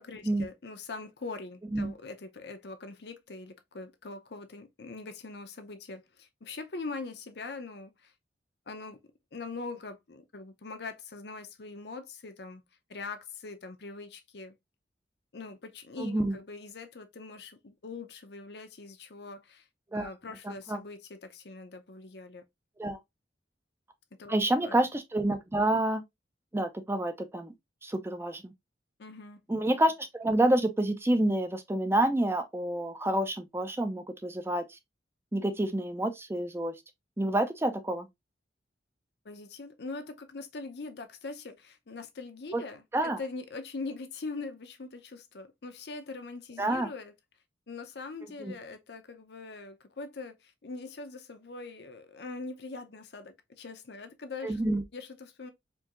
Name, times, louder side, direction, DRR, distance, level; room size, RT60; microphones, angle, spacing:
voice 1, 0.0-8.1 8.7-9.0 9.3-12.6 12.9-14.5 15.3-19.7 19.9-22.4 24.1-24.8 29.0-29.4 39.2-47.1 47.7-54.6 54.9-55.5, left 3 dB, 65° left, 0.7 m, -42 dB
voice 2, 16.0-16.4 19.9-20.1 20.4-20.8 22.8-23.0 24.3-26.0 26.5-27.5 27.8-28.5 29.5-34.8 35.3-36.7 37.2-38.1 42.5-42.6 42.9-43.2 46.6-46.9 48.4-48.5 54.4-54.8, right 1 dB, 15° right, 0.4 m, -28 dB
4.5 x 2.7 x 2.5 m
head